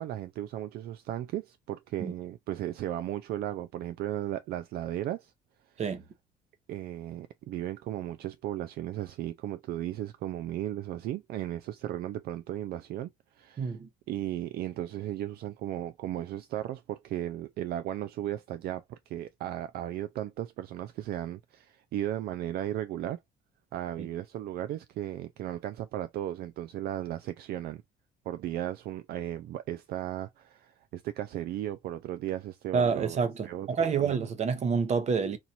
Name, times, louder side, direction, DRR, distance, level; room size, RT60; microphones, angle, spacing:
voice 1, 0.0-5.3 6.7-13.8 14.1-23.2 23.7-27.8 28.3-33.2 33.4-34.1, right 12 dB, 65° right, 0.4 m, -35 dB
voice 2, 13.6-13.9 24.0-24.1 32.7-35.4, right 5 dB, 40° right, 0.9 m, -28 dB
4.3 x 2.5 x 2.7 m
cardioid pair, 110°, 17 cm